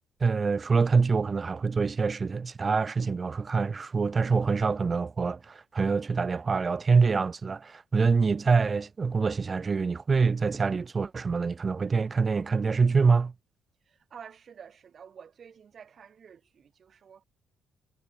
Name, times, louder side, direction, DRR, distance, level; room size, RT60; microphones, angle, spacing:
voice 1, 0.2-13.3, right 4 dB, 35° right, 2.8 m, -25 dB
voice 2, 13.9-17.2, right 7 dB, 50° right, 7.1 m, -50 dB
cardioid pair, 90°, 0 cm